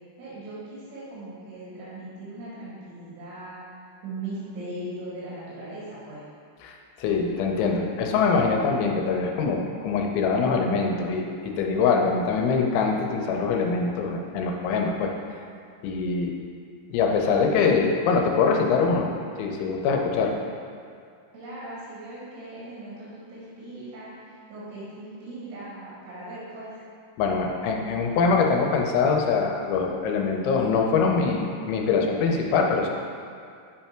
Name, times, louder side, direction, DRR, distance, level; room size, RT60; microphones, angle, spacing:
voice 1, 0.2-3.6 4.0-6.2 21.3-26.8, right 2 dB, 80° right, -9 dB, 4.4 m, -39 dB
voice 2, 6.6-15.1 15.8-16.4 16.9-19.1 19.4-20.4 27.2-32.9, left 5 dB, 85° left, 1 dB, 3.1 m, -23 dB
9.9 x 3.4 x 4.4 m, 2.3 s
omnidirectional pair, 5.3 m